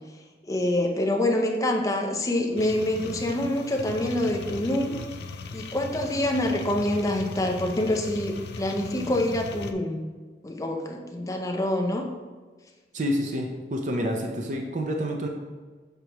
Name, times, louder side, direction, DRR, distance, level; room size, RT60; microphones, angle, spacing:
voice 1, 0.4-5.0 5.5-10.0 10.4-12.1, left 1 dB, 20° left, 2 dB, 0.6 m, -26 dB
sound 1, 2.6-9.7, left 3 dB, 65° left, 0.4 m, -38 dB
voice 2, 12.9-15.3, equal, 45° right, 2 dB, 0.6 m, -28 dB
6.7 x 4.7 x 3.0 m, 1.4 s
head